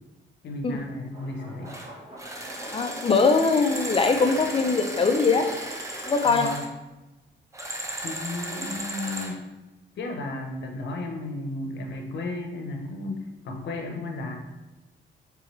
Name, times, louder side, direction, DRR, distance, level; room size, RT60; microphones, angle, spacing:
voice 1, 0.4-1.7 6.2-6.7 8.0-9.5 10.0-14.6, left 2 dB, 65° left, 3 dB, 0.9 m, -34 dB
sound 1, 1.1-6.3, right 1 dB, 30° right, 1.4 m, -42 dB
sound 2, 1.7-1.9 2.2-6.7 7.5-9.4, right 1 dB, 15° right, 0.8 m, -35 dB
voice 2, 2.7-5.5 6.1-6.5, left 4 dB, 30° left, 5 dB, 0.6 m, -22 dB
4.7 x 3.4 x 3.2 m, 1.1 s
cardioid pair, 90°, 20 cm